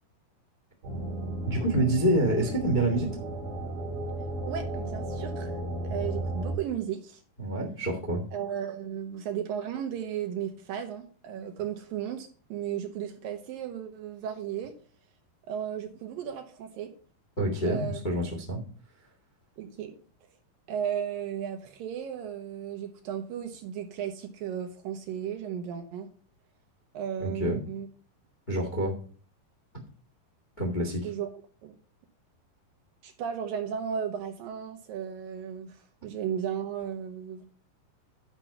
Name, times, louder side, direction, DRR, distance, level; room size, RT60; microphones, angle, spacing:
sound 1, 0.8-6.5, right 1 dB, 35° right, 3.6 m, -34 dB
voice 1, 1.5-3.2 7.4-8.2 17.4-18.6 27.2-27.6 28.5-28.9 30.6-31.1, right 1 dB, 85° left, 2 dB, 0.4 m, -27 dB
voice 2, 4.5-5.6 5.8-7.2 8.3-14.7 15.5-16.9 17.6-18.0 19.6-20.0 20.7-26.1 26.9-27.9 31.0-31.3 31.6-31.7 33.0-37.4, right 8 dB, 75° right, 5 dB, 2.2 m, -35 dB
10.0 x 5.2 x 5.8 m, 0.41 s
omnidirectional pair, 4.9 m